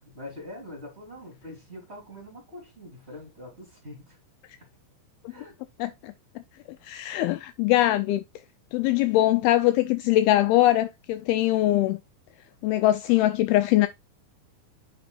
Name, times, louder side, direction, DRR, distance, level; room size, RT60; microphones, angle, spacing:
voice 1, 0.0-4.2 4.6-4.7 5.3-5.5, left 1 dB, 15° right, 2.8 m, -43 dB
voice 2, 5.8-6.1 6.8-8.2 8.7-12.0 12.6-13.9, left 15 dB, 90° left, 2.1 m, -22 dB
8.7 x 5.9 x 2.3 m
omnidirectional pair, 4.9 m